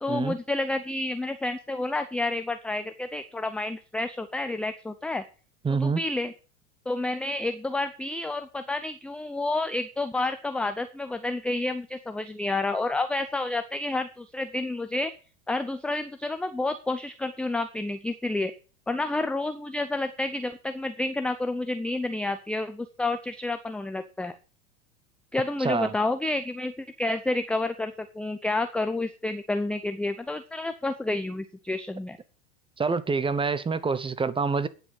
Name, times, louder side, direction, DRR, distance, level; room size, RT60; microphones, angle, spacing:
voice 1, 0.0-5.2 5.7-6.3 6.9-15.1 15.5-18.5 18.9-24.3 25.3-32.2, left 2 dB, 5° left, 0.4 m, -29 dB
voice 2, 5.6-6.0 25.6-25.9 32.8-34.7, right 4 dB, 10° right, 0.9 m, -26 dB
9.6 x 6.4 x 7.3 m
hypercardioid pair, 95°, 41 cm